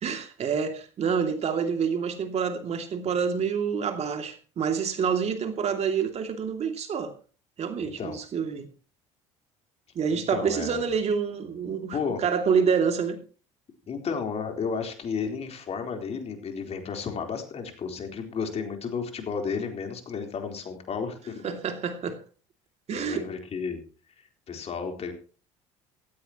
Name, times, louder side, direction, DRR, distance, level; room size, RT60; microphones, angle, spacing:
voice 1, 0.0-7.1 7.6-8.7 9.9-13.2 21.4-22.2 22.9-23.2, right 6 dB, 45° right, 2.6 m, -27 dB
voice 2, 7.8-8.2 10.1-10.9 11.9-12.2 13.9-21.4 22.9-23.8 24.5-25.1, left 5 dB, 45° left, 4.0 m, -32 dB
16.5 x 15.0 x 3.0 m
hypercardioid pair, 65°, 15 cm